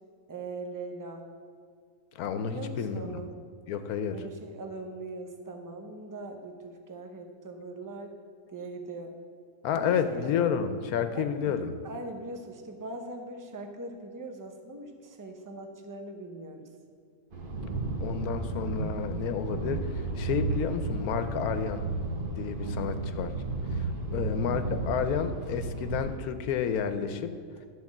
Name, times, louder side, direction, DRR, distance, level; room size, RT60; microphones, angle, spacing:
voice 1, 0.3-1.3 2.4-3.3 4.1-8.1 8.5-9.1 9.7-10.4 11.1-11.6 11.8-16.7 22.6-23.0 24.1-24.3, right 2 dB, 20° right, 4 dB, 0.5 m, -41 dB
voice 2, 2.2-3.2 3.7-4.2 9.6-11.7 18.0-21.8 22.4-23.3 23.7-23.9 24.1-27.3, left 7 dB, 85° left, 10 dB, 1.1 m, -30 dB
sound 1, 17.3-26.2, right 3 dB, 40° right, 1.1 m, -33 dB
12.0 x 4.2 x 7.2 m, 2.2 s
omnidirectional pair, 1.5 m